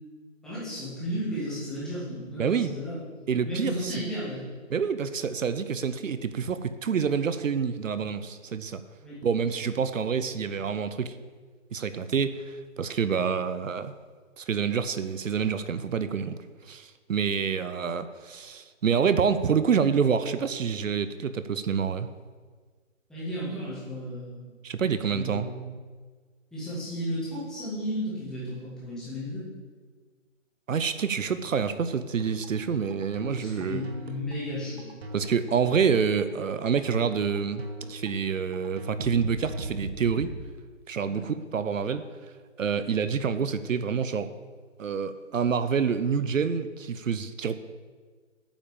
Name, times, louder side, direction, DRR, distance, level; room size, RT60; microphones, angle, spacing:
voice 1, 0.4-3.0 3.4-4.5 9.0-9.2 23.1-24.5 24.8-25.7 26.5-29.5 33.3-34.9 41.1-41.2, equal, ahead, -11 dB, 1.8 m, -34 dB
voice 2, 2.4-2.7 3.3-4.0 4.7-8.8 9.2-11.2 11.7-14.0 14.4-16.4 16.6-22.1 24.6-25.5 30.7-33.8 35.1-37.6 37.9-40.3 40.9-42.3 42.6-44.3 44.8-47.6, right 6 dB, 80° right, 12 dB, 0.8 m, -27 dB
sound 1, 32.2-40.3, right 1 dB, 55° right, 1.4 m, -39 dB
8.7 x 5.7 x 7.1 m, 1.5 s
hypercardioid pair, 165°, 39 cm